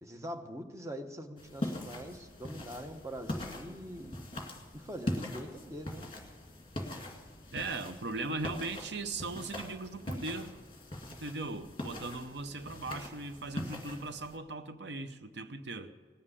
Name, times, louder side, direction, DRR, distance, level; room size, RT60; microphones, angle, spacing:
voice 1, 0.0-4.2 4.7-6.1, equal, 15° right, 4 dB, 1.0 m, -43 dB
sound 1, 1.4-14.4, left 1 dB, 30° left, 2.0 m, -42 dB
voice 2, 7.5-10.6 11.2-15.9, right 3 dB, 70° right, 10 dB, 0.8 m, -39 dB
18.5 x 7.5 x 9.8 m, 1.5 s
head